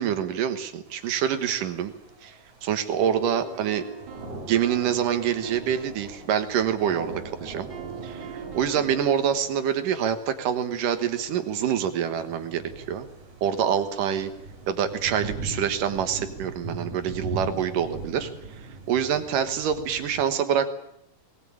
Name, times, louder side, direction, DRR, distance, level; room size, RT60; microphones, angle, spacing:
voice 1, 0.0-1.9 2.2-2.3 2.6-3.8 4.5-7.7 8.0-13.1 13.4-14.3 14.7-18.3 18.9-20.7, right 8 dB, 80° right, 9 dB, 3.1 m, -26 dB
sound 1, 0.9-20.2, right 2 dB, 60° right, 5.3 m, -41 dB
sound 2, 3.0-6.0 7.7-9.1, right 4 dB, 40° right, 1.9 m, -43 dB
20.0 x 19.5 x 8.7 m, 0.80 s
omnidirectional pair, 3.7 m